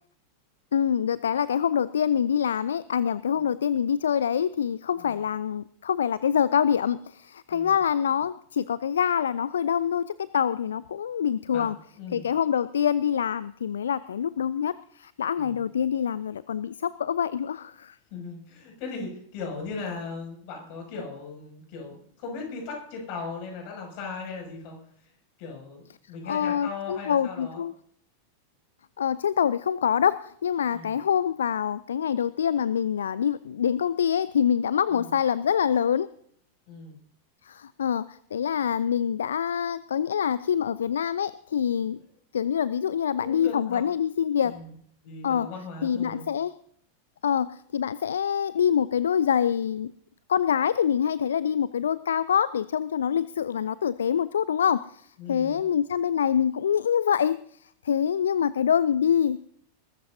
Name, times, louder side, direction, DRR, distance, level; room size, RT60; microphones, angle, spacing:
voice 1, 0.7-11.8 12.1-18.0 26.3-27.7 29.0-36.1 37.4-42.0 42.3-44.5 45.2-45.5 45.8-46.5 47.2-49.9 50.3-59.4, left 8 dB, 65° left, 18 dB, 0.4 m, -25 dB
voice 2, 11.5-12.2 15.4-15.6 18.1-24.8 25.0-25.1 25.4-27.6 30.7-30.9 34.9-35.1 36.7-37.0 43.2-43.8 44.4-44.7 45.0-46.3 55.2-55.6, left 4 dB, 45° left, 1 dB, 6.5 m, -38 dB
21.5 x 13.5 x 2.7 m, 0.64 s
figure-of-eight pair, 90°, 0 cm